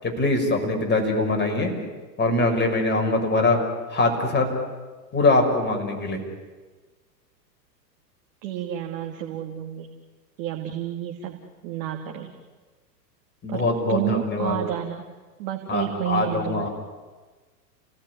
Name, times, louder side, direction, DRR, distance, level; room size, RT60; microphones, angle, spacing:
voice 1, 0.0-1.7 2.2-3.6 3.9-4.5 5.1-6.2 13.4-14.5 15.7-16.7, left 2 dB, 20° left, 3 dB, 6.2 m, -22 dB
voice 2, 8.4-9.9 10.4-12.3 13.5-13.6 13.9-15.0 15.4-16.7, right 11 dB, 50° right, 3 dB, 2.8 m, -30 dB
29.5 x 18.0 x 9.9 m, 1.3 s
hypercardioid pair, 110°, 50 cm